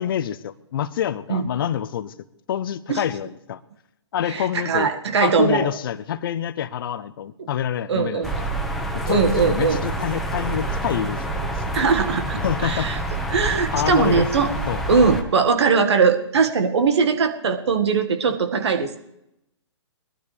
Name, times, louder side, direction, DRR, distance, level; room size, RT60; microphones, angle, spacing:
voice 1, 0.0-2.1 2.5-3.6 4.1-4.9 5.2-8.5 9.1-11.7 12.4-12.9 13.4-14.3 14.7-14.8, left 10 dB, 50° left, 16 dB, 0.8 m, -27 dB
voice 2, 4.3-5.7 7.4-7.5 7.9-8.3 9.1-9.8 11.7-13.0 13.3-14.5 14.9-19.0, right 5 dB, 65° right, 6 dB, 1.8 m, -20 dB
sound 1, 8.2-15.2, right 2 dB, ahead, 1.3 m, -27 dB
21.5 x 12.5 x 3.4 m, 0.84 s
hypercardioid pair, 135°, 15 cm